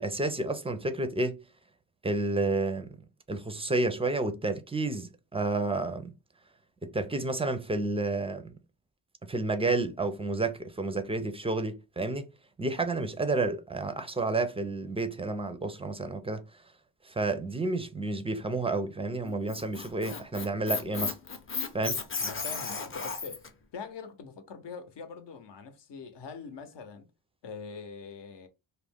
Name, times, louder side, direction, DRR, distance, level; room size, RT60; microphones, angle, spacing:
voice 1, 0.0-1.4 2.0-2.9 3.3-6.1 6.8-8.5 9.2-12.3 12.6-16.4 17.0-21.2 21.7-22.0, right 2 dB, 15° right, 0.4 m, -30 dB
Squeak, 19.2-23.5, left 4 dB, 25° left, 0.6 m, -34 dB
voice 2, 22.2-23.5 23.7-27.1 27.4-28.5, left 5 dB, 60° left, 0.8 m, -43 dB
2.4 x 2.1 x 3.5 m
cardioid pair, 60°, 48 cm